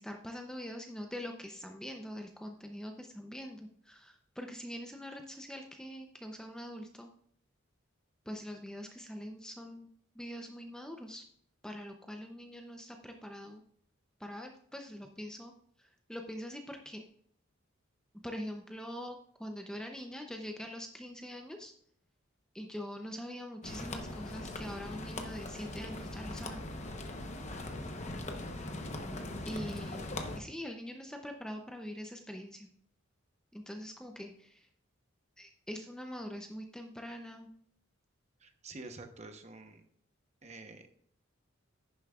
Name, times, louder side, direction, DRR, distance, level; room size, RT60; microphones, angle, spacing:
voice 1, 0.0-7.1 8.3-9.9 10.2-11.2 11.6-13.6 14.2-15.5 15.8-17.0 18.2-21.7 22.5-26.6 29.5-32.7 33.5-34.7 35.4-37.5, equal, 5° left, 3 dB, 0.6 m, -43 dB
sound 1, 23.6-30.4, left 2 dB, 35° left, 0.9 m, -40 dB
voice 2, 38.4-39.9 40.4-40.9, right 3 dB, 30° right, 6 dB, 0.9 m, -48 dB
10.5 x 10.0 x 2.4 m, 0.66 s
head